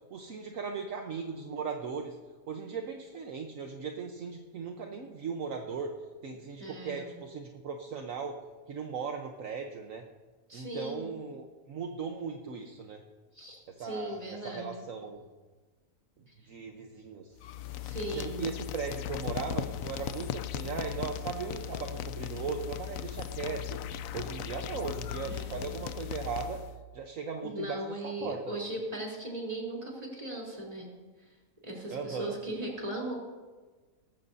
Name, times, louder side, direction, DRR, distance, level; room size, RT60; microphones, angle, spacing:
voice 1, 0.1-2.2 2.5-5.9 6.2-8.4 8.7-10.0 10.5-13.0 13.7-15.2 16.5-17.3 18.1-23.8 24.1-26.6 26.9-28.6 31.9-32.4, right 5 dB, 65° right, 3 dB, 1.3 m, -38 dB
voice 2, 6.6-7.1 10.5-11.1 13.3-14.8 16.3-16.4 17.8-18.5 25.2-25.7 27.4-30.9 31.6-33.1, right 1 dB, 25° right, -2 dB, 3.6 m, -38 dB
sound 1, 17.4-26.8, left 10 dB, 70° left, 1.0 m, -38 dB
18.5 x 15.0 x 2.7 m, 1.3 s
omnidirectional pair, 1.6 m